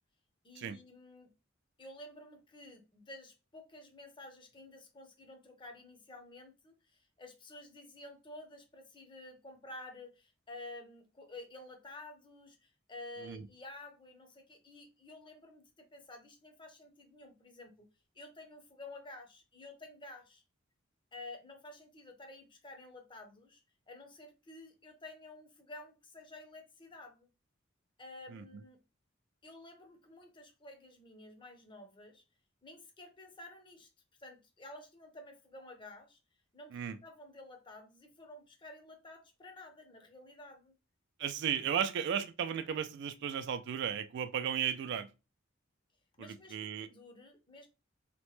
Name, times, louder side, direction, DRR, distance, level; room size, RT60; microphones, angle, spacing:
voice 1, 0.4-1.3 1.8-17.9 18.1-20.4 21.1-23.6 23.9-27.3 28.0-28.8 29.4-32.2 32.6-33.9 34.2-36.2 36.5-40.8 46.2-47.7, left 2 dB, 25° left, 0.6 m, -51 dB
voice 2, 28.3-28.6 36.7-37.0 41.2-45.1 46.2-46.9, right 8 dB, 60° right, 0.3 m, -35 dB
2.9 x 2.1 x 3.0 m
head